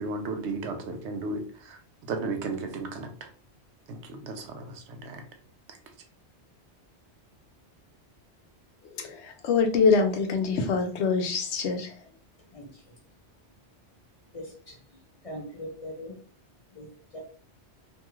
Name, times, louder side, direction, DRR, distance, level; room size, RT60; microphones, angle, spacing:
voice 1, 0.0-1.4 1.7-1.8 2.1-3.3 3.9-5.2, right 3 dB, 80° right, 6 dB, 0.9 m, -34 dB
voice 2, 8.9-12.0, left 5 dB, 80° left, 5 dB, 0.9 m, -25 dB
voice 3, 12.5-12.8 14.3-14.8 15.2-16.2 16.7-16.9 17.1-17.2, equal, 45° left, 1 dB, 0.5 m, -40 dB
2.8 x 2.3 x 3.0 m, 0.43 s
omnidirectional pair, 1.2 m